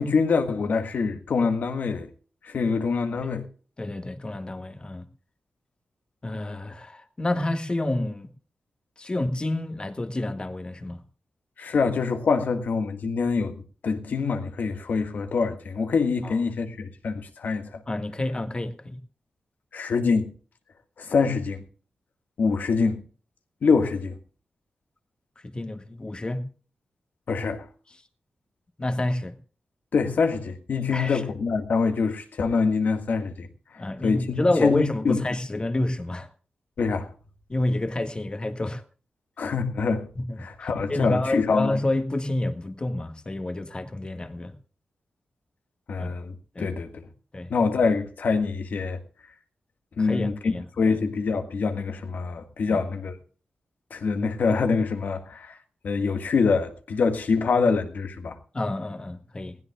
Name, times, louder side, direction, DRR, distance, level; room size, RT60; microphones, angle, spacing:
voice 1, 0.0-2.1 2.4-3.5 11.6-17.8 19.7-20.3 21.0-21.6 22.4-23.0 23.6-24.2 27.3-27.7 29.9-33.5 34.0-35.2 36.8-37.1 39.4-40.1 40.4-41.7 45.9-47.1 47.5-49.0 50.0-53.2 53.9-55.6 55.8-58.4, left 4 dB, 75° left, 1.8 m, -25 dB
voice 2, 3.8-5.0 6.2-8.3 9.0-11.0 16.2-16.4 17.9-19.0 25.5-26.4 28.8-29.3 30.9-31.2 33.8-36.3 37.5-38.8 40.2-44.5 46.0-46.1 46.6-46.7 47.3-47.5 50.0-51.0 52.7-52.8 58.5-59.6, left 2 dB, 30° left, 1.7 m, -29 dB
20.5 x 16.5 x 2.4 m
cardioid pair, 60°, 3 cm